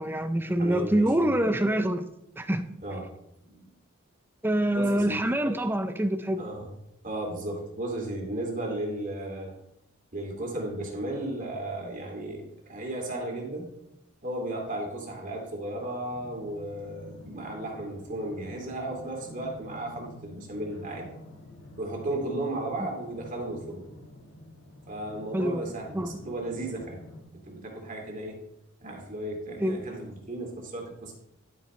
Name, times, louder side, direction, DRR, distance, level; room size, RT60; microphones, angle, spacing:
voice 1, 0.0-2.1 2.4-2.7 4.4-6.5 25.3-26.2 29.6-30.1, right 1 dB, 10° right, 9 dB, 0.5 m, -26 dB
voice 2, 0.6-1.3 2.8-3.1 3.5-3.7 4.7-5.2 6.4-6.7 7.0-9.6 10.1-13.7 14.2-21.1 21.8-23.9 24.9-27.0 27.5-28.4 28.8-31.1, right 1 dB, 40° right, 1 dB, 2.4 m, -35 dB
sound 1, 16.1-27.2, left 1 dB, 70° left, 2.4 m, -48 dB
12.0 x 8.7 x 3.2 m, 0.81 s
head